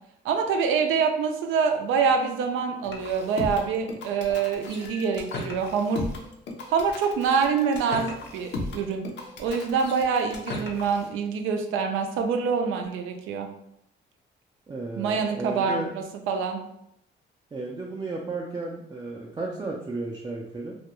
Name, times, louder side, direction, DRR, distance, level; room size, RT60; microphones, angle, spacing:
voice 1, 0.2-6.0 6.7-9.1 9.4-13.5 15.0-16.6, right 5 dB, 90° right, 4 dB, 0.4 m, -25 dB
sound 1, 2.8-11.1, left 2 dB, 65° left, 0.5 m, -36 dB
voice 2, 14.7-15.9 17.5-20.8, right 3 dB, 20° right, -3 dB, 0.4 m, -33 dB
2.4 x 2.2 x 2.9 m, 0.77 s
cardioid pair, 90°, 20 cm